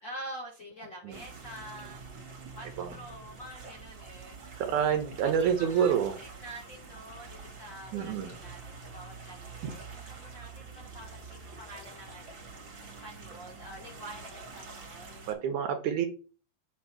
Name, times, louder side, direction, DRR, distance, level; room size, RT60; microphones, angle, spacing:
voice 1, 0.0-2.0 2.5-4.5 5.2-12.4 12.8-15.3, right 1 dB, 50° left, -1 dB, 1.5 m, -47 dB
sound 1, 1.1-15.3, right 4 dB, 40° right, 2.4 m, -47 dB
voice 2, 4.6-6.2 7.9-8.3 9.6-9.7 15.3-16.1, right 8 dB, 70° right, 6 dB, 2.0 m, -28 dB
7.2 x 3.2 x 5.9 m, 0.36 s
omnidirectional pair, 4.0 m